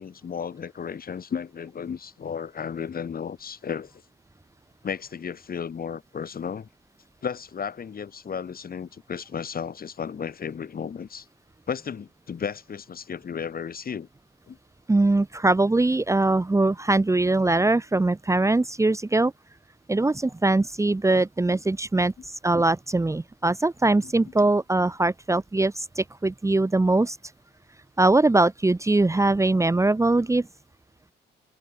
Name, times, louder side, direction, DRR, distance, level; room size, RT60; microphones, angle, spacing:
voice 1, 0.0-3.9 4.8-6.7 7.2-11.2 11.7-14.1 14.5-14.6 24.0-24.1, left 7 dB, 45° left, 7.0 m, -34 dB
voice 2, 14.9-19.3 19.9-27.2 28.0-30.5, right 2 dB, 15° right, 1.4 m, -22 dB
cardioid pair, 90°, 20 cm